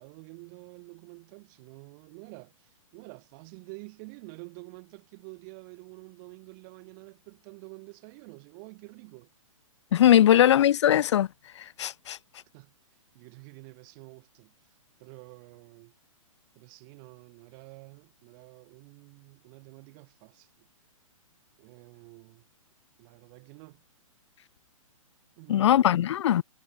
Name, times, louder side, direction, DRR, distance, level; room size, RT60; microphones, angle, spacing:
voice 1, 0.0-9.3 10.0-10.4 12.5-12.7 13.1-14.5 15.0-15.9 16.5-20.7 21.6-22.5 23.0-23.8 25.4-26.1, right 32 dB, 35° right, 4.5 m, -49 dB
voice 2, 9.9-11.3 11.8-12.2 25.5-26.4, left 11 dB, 55° left, 0.7 m, -20 dB
figure-of-eight pair, 125°, 17 cm